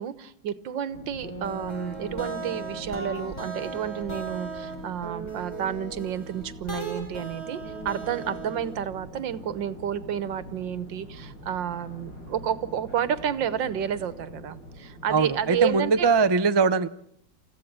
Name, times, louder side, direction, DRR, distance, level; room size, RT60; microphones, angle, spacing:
voice 1, 0.0-16.1, right 9 dB, 85° right, 15 dB, 1.8 m, -31 dB
sound 1, 0.9-16.3, left 1 dB, 75° left, 8.1 m, -45 dB
sound 2, 1.2-8.8, right 3 dB, 15° left, 6.0 m, -37 dB
voice 2, 15.1-16.9, right 4 dB, 30° right, 10 dB, 0.5 m, -21 dB
29.0 x 15.5 x 8.8 m, 0.69 s
omnidirectional pair, 1.9 m